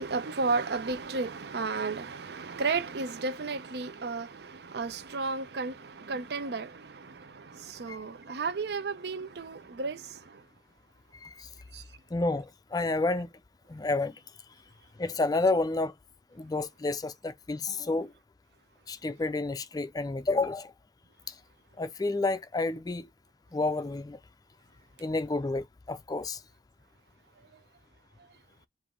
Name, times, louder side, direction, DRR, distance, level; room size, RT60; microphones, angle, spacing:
voice 1, 0.0-7.1 7.7-10.0, right 4 dB, 65° right, 0.6 m, -33 dB
voice 2, 11.1-11.5 12.1-13.3 13.7-14.2 15.0-15.9 16.3-18.1 18.9-20.7 21.3-21.4 21.8-23.1 23.5-24.2 25.0-26.4, left 3 dB, 20° left, 0.4 m, -30 dB
5.0 x 2.6 x 3.5 m
head